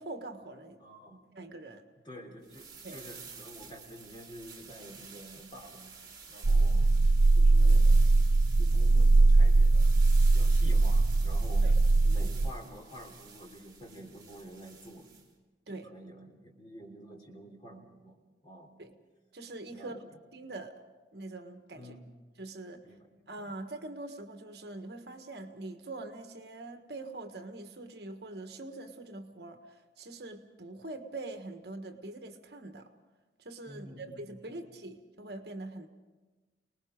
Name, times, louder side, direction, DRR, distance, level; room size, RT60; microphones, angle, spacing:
voice 1, 0.0-0.8 1.3-1.8 2.8-3.0 11.6-11.7 15.7-15.9 18.8-18.9 19.3-20.0 20.3-20.8 21.1-21.9 22.4-22.8 23.3-32.9 33.4-35.9, right 2 dB, 60° right, 6 dB, 1.4 m, -43 dB
voice 2, 0.8-1.3 2.0-6.9 7.4-8.3 8.6-11.7 12.0-15.1 15.7-18.2 18.4-18.7 19.7-20.0 21.7-22.0 22.8-23.0 33.7-34.2 34.5-34.6, equal, 25° left, 1 dB, 3.4 m, -49 dB
sound 1, 2.4-15.3, right 5 dB, 20° right, 3.1 m, -50 dB
sound 2, 6.4-12.5, right 2 dB, 85° right, 0.6 m, -21 dB
29.5 x 19.5 x 5.1 m, 1.2 s
head